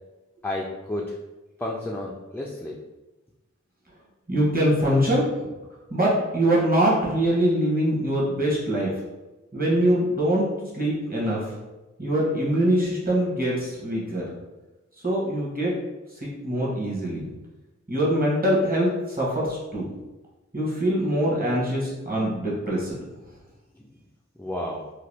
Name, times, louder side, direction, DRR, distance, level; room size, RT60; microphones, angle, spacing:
voice 1, 0.4-1.2 1.6-2.8 23.8-23.9 24.4-24.9, left 1 dB, 5° left, -2 dB, 0.3 m, -31 dB
voice 2, 4.3-5.2 5.9-8.9 9.5-10.5 10.7-11.5 12.0-14.2 15.0-15.7 16.2-17.3 17.9-19.9 20.5-23.0, right 1 dB, 30° right, -6 dB, 1.2 m, -23 dB
2.8 x 2.2 x 3.3 m, 1.1 s
wide cardioid pair, 45°, 30 cm